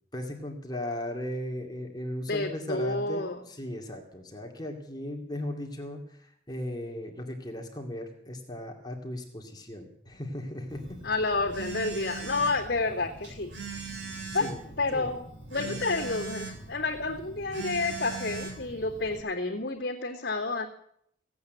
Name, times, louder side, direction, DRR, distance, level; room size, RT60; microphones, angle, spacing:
voice 1, 0.1-11.0 14.4-14.6 14.9-15.1 15.6-15.8, left 1 dB, 20° left, 2 dB, 2.3 m, -37 dB
voice 2, 2.3-3.4 11.0-13.5 14.3-14.5 14.8-15.2 15.5-20.7, left 3 dB, 60° left, -7 dB, 2.5 m, -30 dB
Telephone, 10.7-19.2, right 4 dB, 60° right, 3.5 m, -40 dB
16.5 x 8.6 x 9.1 m, 0.71 s
head